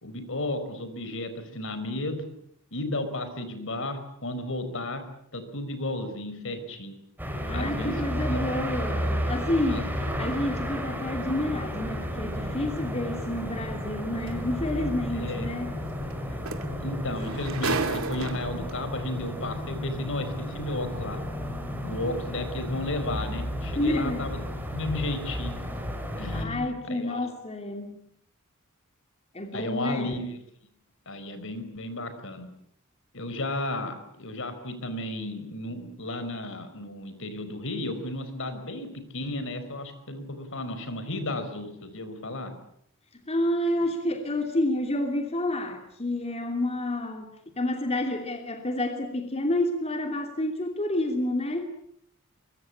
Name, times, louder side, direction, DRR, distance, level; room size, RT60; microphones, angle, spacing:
voice 1, 0.0-2.2 2.7-5.0 5.3-6.9 7.5-8.0 8.3-8.4 9.7-10.1 14.8-14.9 15.2-15.5 16.8-21.2 21.8-25.6 26.2-27.3 29.5-30.3 31.1-32.5 33.1-42.5, left 1 dB, 65° left, 10 dB, 4.9 m, -33 dB
sound 1, 7.2-26.5, equal, 10° right, 5.3 m, -32 dB
voice 2, 7.4-15.7 23.7-24.3 26.3-28.0 29.3-30.2 43.1-47.3 47.6-51.6, left 1 dB, 30° left, 4 dB, 2.9 m, -29 dB
sound 2, 14.3-14.4 16.1-16.2 16.5-18.7 19.6-19.7, right 4 dB, 80° right, 2.5 m, -32 dB
23.5 x 23.5 x 8.7 m, 0.70 s
head